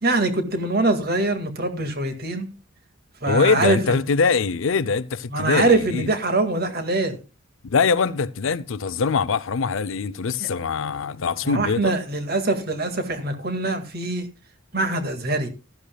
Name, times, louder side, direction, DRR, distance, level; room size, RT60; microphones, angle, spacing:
voice 1, 0.0-2.5 3.2-3.8 5.3-7.2 10.4-10.5 11.4-14.3 14.7-15.5, right 2 dB, 50° right, 1.9 m, -23 dB
voice 2, 3.3-6.1 7.6-11.9, left 5 dB, 70° left, 0.5 m, -23 dB
15.0 x 12.5 x 2.3 m
head